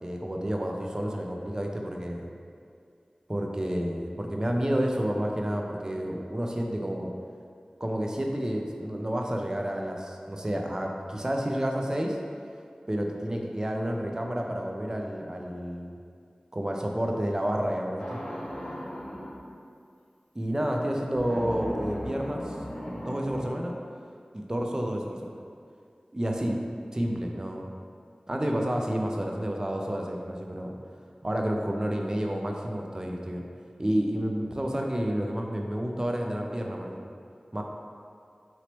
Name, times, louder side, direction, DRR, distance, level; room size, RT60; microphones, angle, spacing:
voice 1, 0.0-2.3 3.3-7.1 7.8-12.2 12.9-16.0 16.5-18.2 20.3-22.6 22.9-23.8 24.3-25.3 26.1-26.6 26.9-27.6 28.3-30.7 31.2-33.4 33.8-37.0 37.5-37.6, equal, 25° right, 1 dB, 0.4 m, -30 dB
sound 1, 18.0-19.4 21.2-23.5, equal, 55° left, 0.6 m, -37 dB
3.0 x 2.9 x 2.9 m, 2.2 s
wide cardioid pair, 40°, 2 cm